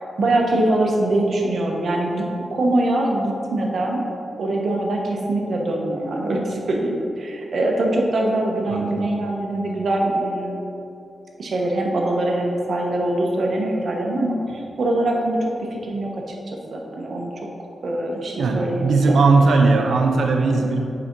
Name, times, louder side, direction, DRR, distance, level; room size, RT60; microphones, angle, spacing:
voice 1, 0.2-2.2 2.5-4.0 4.4-10.6 11.4-15.4 15.7-16.1 16.7-17.3 17.8-19.2, right 1 dB, 70° right, 0 dB, 0.9 m, -23 dB
voice 2, 8.7-9.2 18.4-20.9, right 3 dB, 85° right, 3 dB, 0.5 m, -18 dB
4.8 x 4.2 x 5.1 m, 2.7 s
cardioid pair, 55°, 0 cm